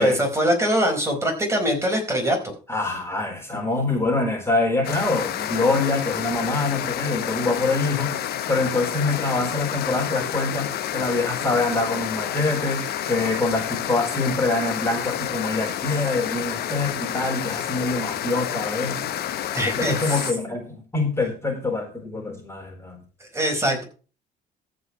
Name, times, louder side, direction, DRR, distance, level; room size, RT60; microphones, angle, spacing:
voice 1, 0.0-2.5 19.5-20.2 23.2-23.8, equal, 15° right, 2 dB, 4.7 m, -23 dB
voice 2, 2.7-8.2 8.5-19.1 19.7-23.0, left 3 dB, 15° left, 1 dB, 4.0 m, -25 dB
sound 1, 4.8-20.3, left 11 dB, 70° left, 1.3 m, -29 dB
14.5 x 5.2 x 5.8 m, 0.36 s
cardioid pair, 110°, 17 cm